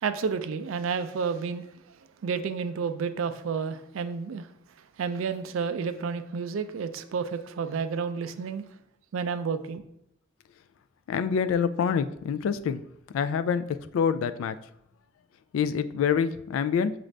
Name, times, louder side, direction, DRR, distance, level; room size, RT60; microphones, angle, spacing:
voice 1, 0.0-1.7 2.2-4.5 5.0-8.6 9.1-9.8, right 5 dB, 75° right, 0.4 m, -30 dB
voice 2, 11.1-12.8 13.1-13.6 13.9-14.6 15.5-16.9, left 7 dB, 85° left, 0.3 m, -26 dB
6.2 x 2.5 x 3.2 m
head